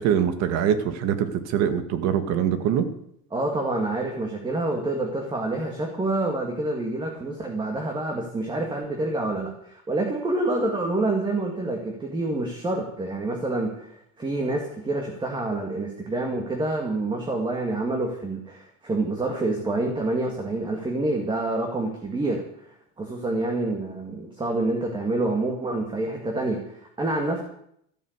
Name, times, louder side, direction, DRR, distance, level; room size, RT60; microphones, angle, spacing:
voice 1, 0.0-2.9, right 9 dB, 60° right, 10 dB, 2.0 m, -23 dB
voice 2, 3.3-22.7 23.0-27.4, right 2 dB, 15° right, 1 dB, 2.3 m, -27 dB
13.5 x 11.0 x 8.2 m, 0.71 s
cardioid pair, 150°, 29 cm